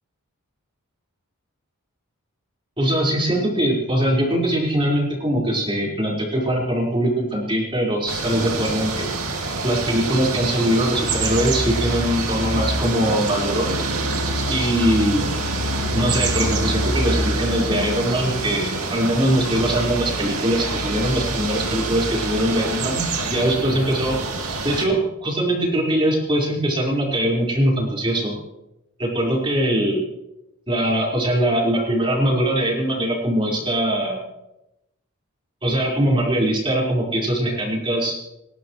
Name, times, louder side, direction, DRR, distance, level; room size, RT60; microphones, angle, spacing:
voice 1, 2.8-9.1 9.6-13.7 14.5-15.2 15.9-23.0 23.3-24.2 24.6-28.4 29.0-30.1 30.7-34.2 35.6-38.2, right 1 dB, 25° right, -3 dB, 4.8 m, -22 dB
sound 1, 8.1-24.9, right 2 dB, 80° right, 2.4 m, -25 dB
30.0 x 12.5 x 3.2 m, 0.89 s
head